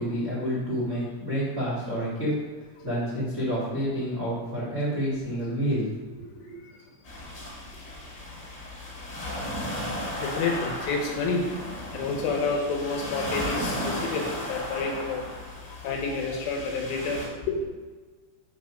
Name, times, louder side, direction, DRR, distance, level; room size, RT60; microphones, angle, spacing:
voice 1, 0.0-2.3 2.8-5.9 6.5-6.6, equal, 85° right, -7 dB, 0.6 m, -28 dB
sound 1, 7.0-17.3, equal, 25° left, 1.9 m, -35 dB
voice 2, 10.2-11.4 11.9-15.2 15.8-17.6, left 4 dB, 75° left, 1 dB, 3.0 m, -29 dB
6.6 x 6.1 x 5.1 m, 1.4 s
omnidirectional pair, 5.5 m